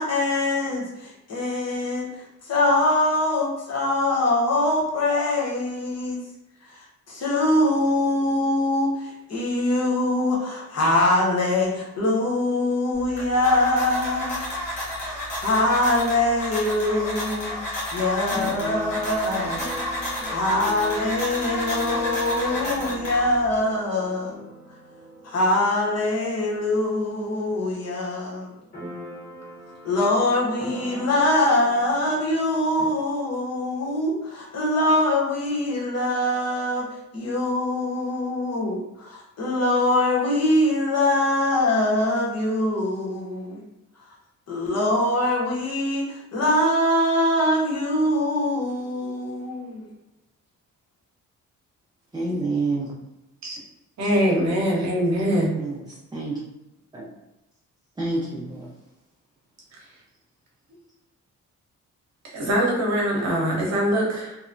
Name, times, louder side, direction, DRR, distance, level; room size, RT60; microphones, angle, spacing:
voice 1, 0.0-2.1 2.5-6.2 7.1-14.5 15.0-19.6 20.3-24.4 25.2-28.5 29.8-36.9 37.1-43.6 44.5-49.8, left 1 dB, 55° left, -4 dB, 1.0 m, -23 dB
sound 1, 12.9-23.6, left 1 dB, 80° left, 1.2 m, -31 dB
Keyboard (musical), 18.3-27.8 28.1-28.2 28.4-32.8, equal, 25° left, 1.5 m, -40 dB
voice 2, 52.1-52.9 55.6-56.4 56.9-57.0 58.0-58.7, right 3 dB, 15° right, -5 dB, 0.5 m, -28 dB
voice 3, 54.0-55.5 62.3-64.4, equal, 60° right, -2 dB, 0.9 m, -22 dB
2.9 x 2.1 x 2.5 m, 0.94 s
cardioid pair, 90°, 31 cm